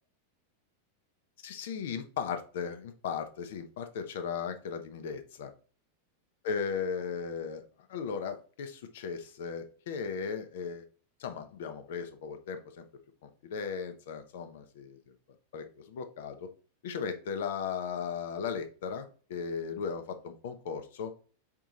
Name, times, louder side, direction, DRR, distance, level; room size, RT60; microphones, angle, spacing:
voice 1, 1.4-5.5 6.4-7.6 7.9-10.8 11.2-12.8 13.2-15.0 15.5-16.5 16.8-21.1, left 6 dB, 55° left, 8 dB, 0.7 m, -36 dB
4.6 x 3.0 x 3.8 m, 0.39 s
figure-of-eight pair, 90°, 0 cm